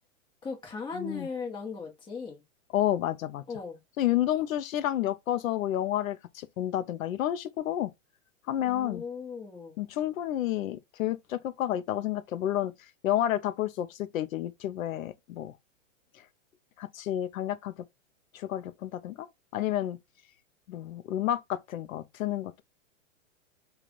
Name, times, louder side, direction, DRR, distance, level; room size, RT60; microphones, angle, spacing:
voice 1, 0.4-2.4 3.5-3.8 8.6-9.8, left 4 dB, 10° left, 0.9 m, -38 dB
voice 2, 0.9-1.3 2.7-3.4 4.0-7.9 8.5-9.0 9.8-15.5 16.2-16.3 16.8-17.7 18.3-19.3 19.5-20.0 20.7-22.6, left 12 dB, 85° left, 0.5 m, -30 dB
3.2 x 2.4 x 3.8 m
hypercardioid pair, 135°, 40 cm